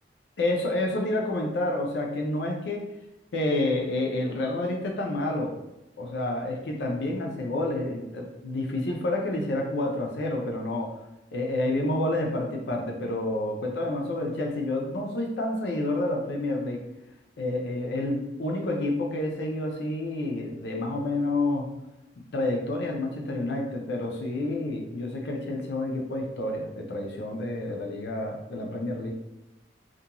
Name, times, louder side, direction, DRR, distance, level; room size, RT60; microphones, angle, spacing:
voice 1, 0.4-2.8 3.3-5.6 6.0-11.0 11.3-16.8 17.4-21.7 22.3-29.1, left 1 dB, 70° left, 1 dB, 0.5 m, -29 dB
2.5 x 2.2 x 2.8 m, 0.91 s
head